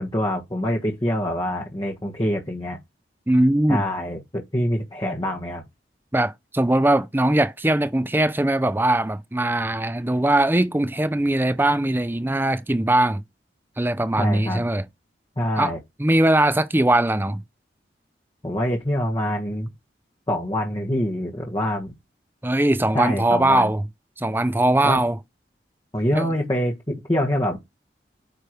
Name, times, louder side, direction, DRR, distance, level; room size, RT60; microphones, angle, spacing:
voice 1, 0.0-2.8 3.7-5.6 14.2-14.6 15.4-15.8 18.4-19.7 20.3-21.9 22.9-23.7 24.8-25.0 25.9-27.6, equal, 25° left, 1.3 m, -25 dB
voice 2, 3.3-3.8 6.1-13.2 13.8-14.8 15.6-15.7 16.0-17.4 22.4-23.8 24.2-25.2 26.1-26.3, right 1 dB, 10° right, 0.5 m, -20 dB
9.3 x 3.3 x 4.6 m
head